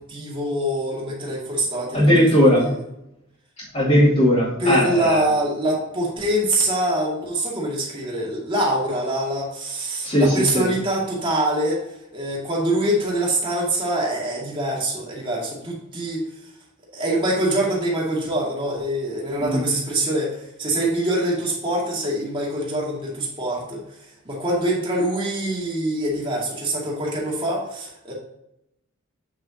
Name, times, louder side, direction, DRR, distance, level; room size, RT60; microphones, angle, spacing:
voice 1, 0.0-2.1 2.6-2.7 4.6-11.8 12.1-16.2 16.9-28.1, right 1 dB, 25° right, -3 dB, 2.3 m, -24 dB
voice 2, 1.9-2.7 3.7-5.2 10.0-10.6 19.4-19.7, equal, 35° left, -12 dB, 2.9 m, -18 dB
8.2 x 6.7 x 2.9 m, 0.83 s
head